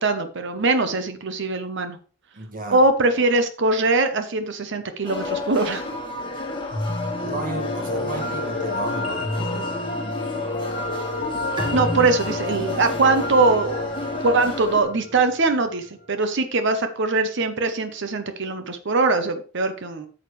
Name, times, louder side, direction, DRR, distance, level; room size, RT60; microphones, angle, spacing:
voice 1, 0.0-2.0 2.7-5.9 11.7-13.9 14.2-20.1, right 3 dB, 60° right, 0.9 m, -22 dB
voice 2, 2.3-2.8 7.2-9.7, right 2 dB, 40° right, 1.7 m, -33 dB
sound 1, 5.0-14.8, left 2 dB, 25° left, 1.6 m, -31 dB
sound 2, 6.7-15.9, left 1 dB, 40° left, 1.7 m, -30 dB
Bowed string instrument, 11.6-15.0, right 1 dB, 20° right, 1.7 m, -38 dB
8.9 x 7.3 x 3.2 m
head